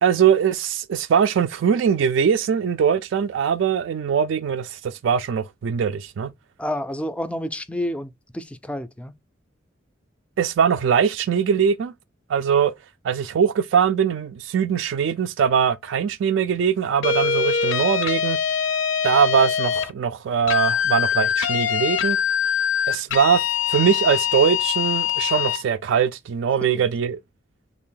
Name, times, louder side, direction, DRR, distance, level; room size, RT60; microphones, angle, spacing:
voice 1, 0.0-6.3 10.4-11.9 12.3-12.7 13.0-18.4 19.0-22.2 22.9-23.4 23.7-27.2, right 7 dB, 75° right, 0.3 m, -21 dB
voice 2, 6.6-9.1, left 1 dB, 5° left, 0.3 m, -29 dB
sound 1, 17.0-19.9 20.5-25.6, left 8 dB, 90° left, 0.5 m, -23 dB
3.4 x 2.5 x 3.7 m
head